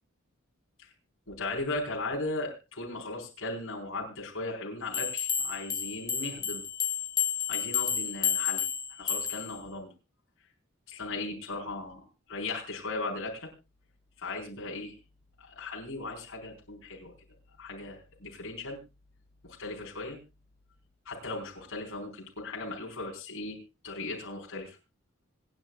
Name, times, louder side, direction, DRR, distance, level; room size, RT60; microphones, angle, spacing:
voice 1, 1.3-6.6 7.5-9.9 10.9-13.5 14.2-15.0 15.4-17.1 17.6-18.8 19.4-20.2 21.0-24.8, left 2 dB, 75° left, -2 dB, 4.4 m, -37 dB
sound 1, 4.9-9.6, left 8 dB, 15° left, 1.0 m, -31 dB
26.0 x 9.5 x 2.4 m, 0.27 s
head